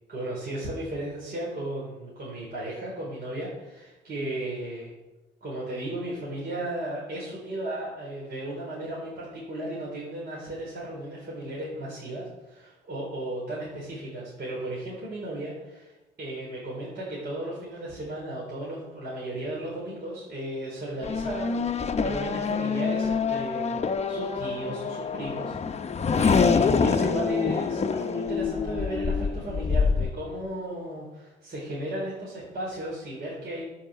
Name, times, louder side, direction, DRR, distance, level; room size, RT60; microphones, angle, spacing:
voice 1, 0.1-4.9 5.4-15.9 16.2-33.6, right 1 dB, 55° right, -5 dB, 4.3 m, -35 dB
Race car auto racing / Accelerating revving vroom, 21.0-30.1, left 5 dB, 35° left, 0.7 m, -26 dB
13.5 x 5.8 x 6.5 m, 1.1 s
cardioid pair, 90°, 20 cm